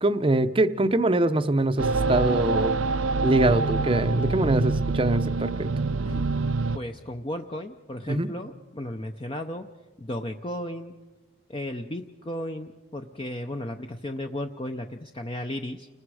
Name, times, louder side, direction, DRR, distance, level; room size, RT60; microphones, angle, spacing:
voice 1, 0.0-2.8 3.2-5.7 8.1-8.3, right 2 dB, 25° right, 11 dB, 0.6 m, -23 dB
sound 1, 1.8-6.8, right 3 dB, 75° right, 0.6 m, -25 dB
voice 2, 6.7-9.7 10.0-10.9 11.5-15.9, left 1 dB, 25° left, 5 dB, 0.6 m, -34 dB
30.0 x 20.5 x 4.9 m, 1.2 s
head